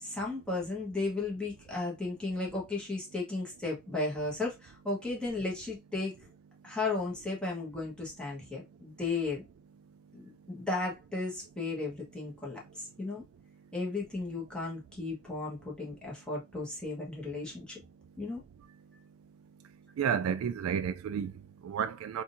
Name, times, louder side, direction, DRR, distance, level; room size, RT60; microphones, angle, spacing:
voice 1, 0.0-6.1 6.6-9.5 10.1-10.2 10.5-13.2 13.7-17.8 18.2-18.4, left 3 dB, 5° left, 1.3 m, -35 dB
voice 2, 20.0-22.2, right 7 dB, 80° right, 0.3 m, -32 dB
3.6 x 2.6 x 2.6 m
head